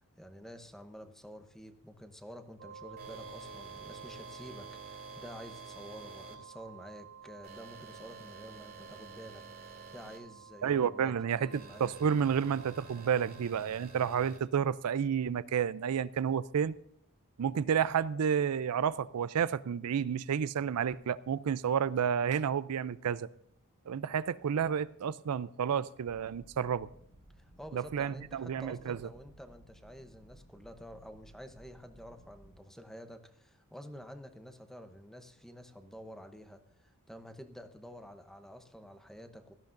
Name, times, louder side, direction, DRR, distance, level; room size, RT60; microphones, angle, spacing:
voice 1, 0.2-11.9 27.4-39.5, equal, ahead, 0.8 m, -50 dB
sound 1, 2.6-13.4, right 7 dB, 75° right, 2.8 m, -52 dB
sound 2, 3.0-6.4 7.4-10.2 11.5-14.4, right 3 dB, 45° right, 2.3 m, -50 dB
voice 2, 10.6-16.7 17.4-23.3 23.9-26.9 27.7-29.0, right 7 dB, 90° right, 0.4 m, -30 dB
sound 3, 26.0-32.6, right 1 dB, 35° left, 3.0 m, -59 dB
17.0 x 13.5 x 2.6 m
head